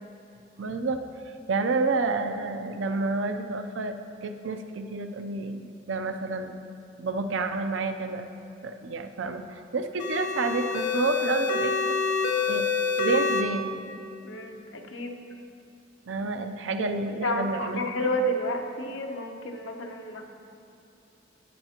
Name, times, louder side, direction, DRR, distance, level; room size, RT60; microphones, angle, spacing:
voice 1, 0.6-1.0 1.3-3.9 4.2-6.6 7.0-8.3 8.6-12.0 12.5-12.7 13.0-13.8 16.1-17.8, right 3 dB, 75° right, 7 dB, 0.5 m, -29 dB
sound 1, 10.0-13.4, left 5 dB, 65° left, 1.1 m, -26 dB
voice 2, 14.2-15.2 17.2-20.2, equal, 90° left, 3 dB, 1.0 m, -30 dB
14.5 x 9.9 x 2.9 m, 2.6 s
head